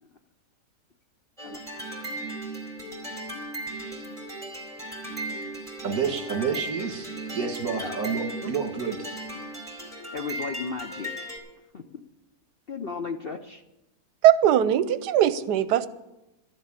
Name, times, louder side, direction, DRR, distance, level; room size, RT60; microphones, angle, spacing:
sound 1, 1.4-11.4, right 1 dB, ahead, 4.0 m, -36 dB
voice 1, 5.8-9.0, right 5 dB, 65° right, 5 dB, 2.0 m, -29 dB
voice 2, 7.8-8.5 10.1-11.3 11.7-11.8 12.7-13.6, left 4 dB, 55° left, 6 dB, 0.6 m, -35 dB
voice 3, 14.2-15.9, right 11 dB, 85° right, 14 dB, 1.2 m, -20 dB
13.0 x 7.5 x 8.6 m, 0.95 s
omnidirectional pair, 1.7 m